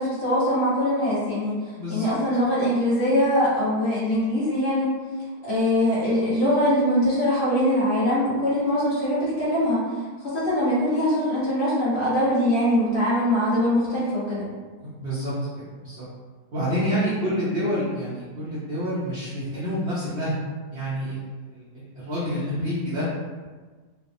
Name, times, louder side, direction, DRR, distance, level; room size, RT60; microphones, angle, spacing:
voice 1, 0.0-1.6 1.9-4.9 5.4-9.9 10.2-14.5, equal, 40° left, -9 dB, 0.9 m, -22 dB
voice 2, 1.7-2.2 14.8-15.5 15.8-16.0 16.5-20.3 20.7-23.1, equal, 65° right, -10 dB, 0.6 m, -28 dB
3.1 x 2.0 x 2.5 m, 1.4 s
omnidirectional pair, 2.0 m